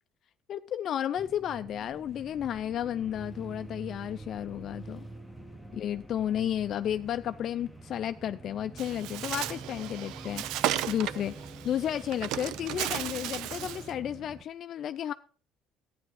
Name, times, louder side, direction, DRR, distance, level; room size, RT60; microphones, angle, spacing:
voice 1, 0.5-5.1 5.7-10.4 10.9-11.3 11.6-15.1, left 10 dB, 55° left, 0.4 m, -32 dB
sound 1, 1.2-14.4, right 2 dB, 5° right, 1.3 m, -46 dB
Bird, 8.8-13.9, right 13 dB, 75° right, 0.5 m, -35 dB
12.0 x 9.5 x 4.9 m
supercardioid pair, 95°, 0 cm